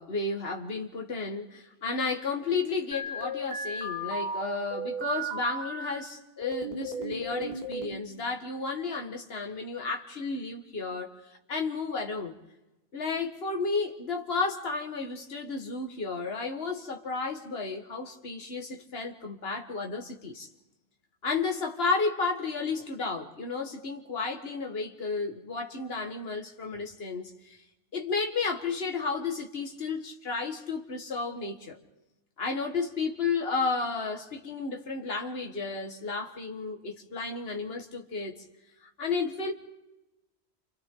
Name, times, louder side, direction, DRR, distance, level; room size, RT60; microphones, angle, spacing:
voice 1, 0.0-11.1 11.5-12.3 12.9-20.5 21.2-27.6 27.9-31.8 32.4-38.4 39.0-39.5, left 4 dB, 65° left, 2 dB, 2.0 m, -32 dB
sound 1, 2.9-5.9 6.4-8.0, right 2 dB, 40° right, 3.3 m, -35 dB
29.5 x 26.5 x 3.9 m, 0.97 s
omnidirectional pair, 1.1 m